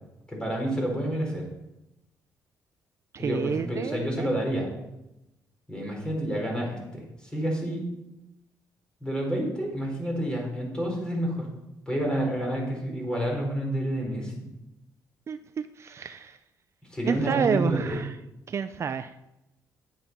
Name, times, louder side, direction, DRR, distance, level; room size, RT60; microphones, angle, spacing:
voice 1, 0.3-1.4 3.2-4.7 5.7-7.8 9.0-11.5 11.9-14.3 16.9-18.0, equal, 10° left, 0 dB, 4.7 m, -29 dB
voice 2, 3.1-4.3 15.3-16.4 17.0-18.2 18.5-19.2, right 7 dB, 45° right, 10 dB, 0.5 m, -29 dB
10.5 x 8.7 x 5.6 m, 0.91 s
cardioid pair, 110°, 7 cm